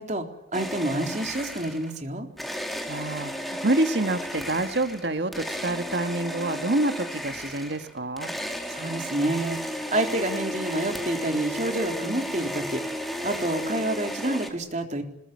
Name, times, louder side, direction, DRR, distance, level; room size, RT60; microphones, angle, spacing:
voice 1, 0.0-2.3 8.7-15.0, right 1 dB, 40° right, 4 dB, 3.9 m, -29 dB
sound 1, 0.5-2.0 2.4-14.5, equal, ahead, 3.7 m, -33 dB
voice 2, 2.9-8.3, right 2 dB, 70° right, 8 dB, 2.0 m, -27 dB
25.5 x 22.0 x 9.8 m, 0.77 s
head